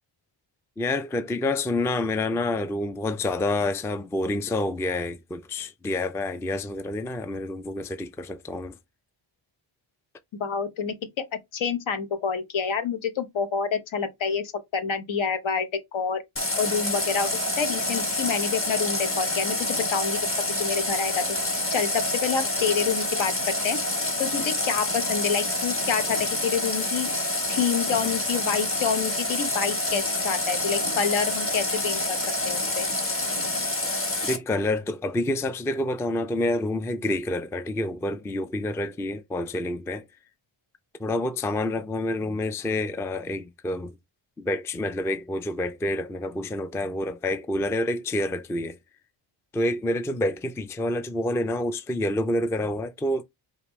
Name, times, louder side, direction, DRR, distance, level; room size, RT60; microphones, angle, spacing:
voice 1, 0.8-8.8 34.2-40.0 41.0-43.9 44.4-48.8 49.5-53.2, left 1 dB, 5° left, 0.3 m, -28 dB
voice 2, 10.4-11.2 11.5-16.2 16.6-17.3 17.6-20.2 20.6-21.2 21.7-23.3 23.6-23.8 24.2-27.1 27.5-32.2 32.4-32.9, left 6 dB, 65° left, 1.0 m, -27 dB
Water tap faucet, 16.4-34.4, left 2 dB, 25° left, 1.2 m, -27 dB
5.0 x 2.5 x 3.1 m
cardioid pair, 95°, 49 cm